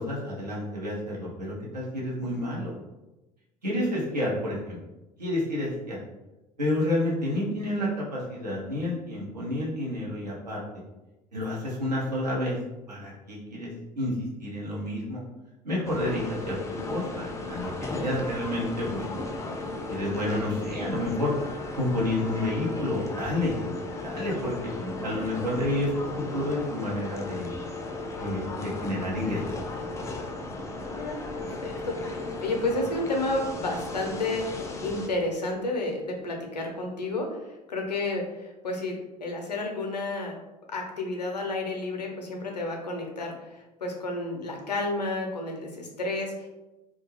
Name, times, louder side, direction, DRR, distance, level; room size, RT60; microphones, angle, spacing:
voice 1, 0.0-2.8 3.6-4.8 5.2-6.0 6.6-10.6 11.3-12.6 12.9-13.7 13.9-15.2 15.6-16.6 16.9-19.2 19.9-21.3 21.8-23.6 24.0-24.7 25.0-27.5 28.2-29.4, left 1 dB, 85° right, -5 dB, 0.7 m, -30 dB
sound 1, 15.8-35.1, left 2 dB, 15° left, 0.3 m, -35 dB
voice 2, 30.8-37.4 37.7-40.4 40.7-46.5, left 2 dB, 85° left, 2 dB, 0.5 m, -31 dB
2.3 x 2.1 x 3.1 m, 1.0 s
figure-of-eight pair, 65°, 21 cm